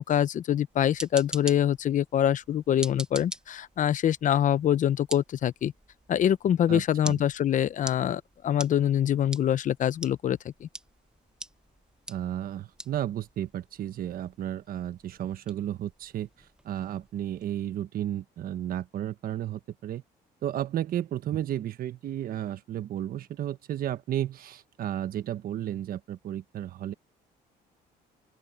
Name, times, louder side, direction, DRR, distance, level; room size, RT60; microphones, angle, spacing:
voice 1, 0.0-5.7 6.1-10.7, left 10 dB, 50° left, 0.8 m, -25 dB
sound 1, 0.7-17.5, right 1 dB, 5° right, 1.5 m, -45 dB
voice 2, 6.7-7.2 12.1-20.0 20.4-26.9, right 11 dB, 60° right, 1.4 m, -33 dB
open air
cardioid pair, 110°, 17 cm